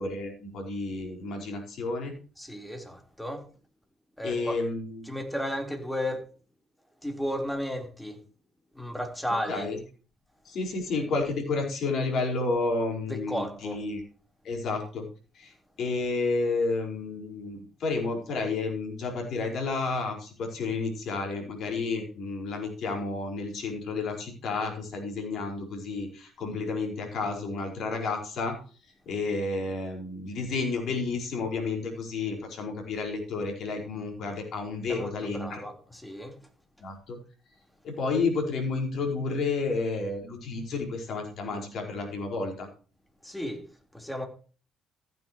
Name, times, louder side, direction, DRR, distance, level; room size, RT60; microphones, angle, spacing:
voice 1, 0.0-2.1 4.2-5.1 9.5-9.8 10.4-14.0 14.4-15.0 15.3-28.5 29.0-35.7 36.8-37.2 37.8-42.7, left 3 dB, 60° left, 4.7 m, -31 dB
voice 2, 2.4-3.5 4.2-4.6 5.1-6.2 7.0-8.2 8.8-9.7 13.1-13.8 34.9-36.3 43.2-43.6 43.9-44.3, equal, 5° left, 3.9 m, -33 dB
15.0 x 9.3 x 3.1 m
hypercardioid pair, 50°, 0 cm